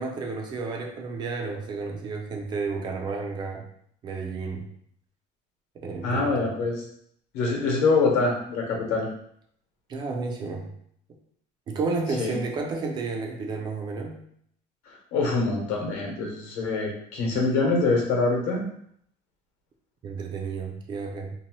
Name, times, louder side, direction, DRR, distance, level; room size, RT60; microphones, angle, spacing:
voice 1, 0.0-3.7 4.0-4.7 5.8-6.5 9.9-10.7 11.7-14.2 20.0-21.3, right 4 dB, 30° right, 2 dB, 0.4 m, -31 dB
voice 2, 6.0-6.8 7.3-9.1 12.2-12.4 14.9-18.7, left 3 dB, 80° left, 0 dB, 0.9 m, -25 dB
2.7 x 2.1 x 2.9 m, 0.67 s
cardioid pair, 165°, 15 cm